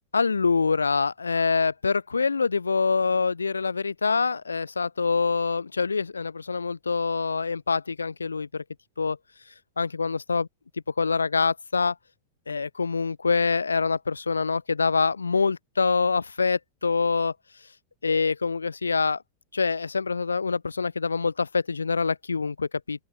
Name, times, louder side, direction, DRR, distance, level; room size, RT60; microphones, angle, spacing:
voice 1, 0.1-8.6 9.0-9.2 9.8-10.5 11.0-11.9 12.5-17.3 18.0-19.2 19.5-23.0, left 4 dB, 75° left, 4.0 m, -25 dB
open air
figure-of-eight pair, 90°, 0 cm